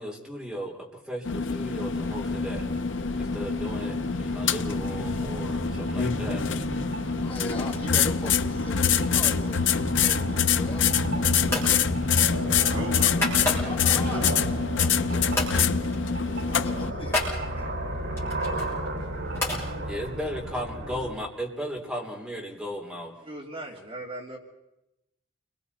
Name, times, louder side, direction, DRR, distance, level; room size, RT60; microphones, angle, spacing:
voice 1, 0.0-2.7 3.2-6.4 19.8-23.1, equal, 5° right, -2 dB, 3.5 m, -36 dB
sound 1, 1.2-16.9, left 6 dB, 70° left, 0.7 m, -25 dB
sound 2, 1.8-21.1, right 1 dB, 80° right, 5.2 m, -34 dB
voice 2, 6.9-11.0 11.4-11.8 13.6-14.5 15.0-15.9 16.4-17.7 19.0-19.1, left 2 dB, 30° left, -2 dB, 3.1 m, -40 dB
sound 3, 10.6-11.0 11.5-11.8 12.1-13.9 14.4-15.1 15.3-15.6 15.9-16.1 16.3-17.4 18.1-19.6, left 2 dB, 15° left, 6.6 m, -31 dB
voice 3, 12.7-13.7 23.2-24.4, right 1 dB, 30° right, -2 dB, 3.2 m, -38 dB
29.5 x 22.5 x 4.3 m, 0.92 s
head